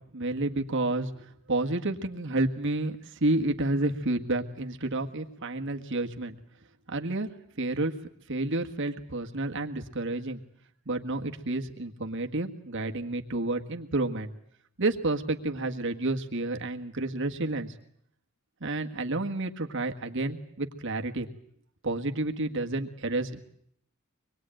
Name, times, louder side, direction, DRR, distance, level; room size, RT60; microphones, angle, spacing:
voice 1, 0.1-6.4 6.9-7.3 7.6-7.9 8.3-10.4 10.9-14.3 14.8-17.7 18.6-21.3 21.8-23.4, right 2 dB, 60° right, 4 dB, 1.7 m, -30 dB
25.0 x 21.0 x 9.0 m, 0.69 s
head